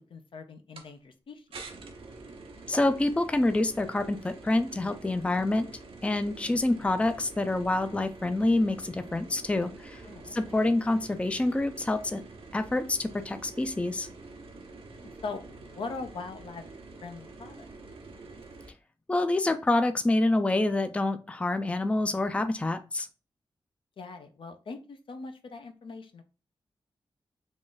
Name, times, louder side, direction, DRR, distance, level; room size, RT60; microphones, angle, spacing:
voice 1, 0.1-1.6 6.8-6.9 10.0-10.5 15.0-16.6 17.0-17.7 24.0-26.2, left 4 dB, 70° left, 7 dB, 0.6 m, -41 dB
sound 1, 0.8-0.9 1.5-18.7, right 3 dB, 90° right, 0.8 m, -47 dB
voice 2, 2.7-5.7 6.0-12.2 12.5-14.1 19.1-23.1, left 2 dB, 15° left, 9 dB, 0.4 m, -27 dB
3.8 x 2.5 x 3.8 m, 0.32 s
wide cardioid pair, 95°, 9 cm